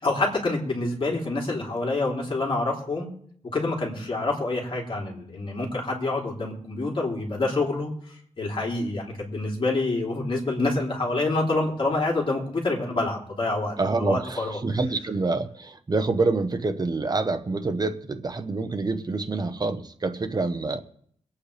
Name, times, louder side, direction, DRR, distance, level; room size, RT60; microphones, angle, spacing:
voice 1, 0.0-3.1 3.5-7.9 8.4-14.6, left 2 dB, 45° left, -2 dB, 3.4 m, -27 dB
voice 2, 13.8-20.8, right 3 dB, 35° right, 7 dB, 1.0 m, -27 dB
23.0 x 8.6 x 3.4 m, 0.63 s
wide cardioid pair, 125°, 12 cm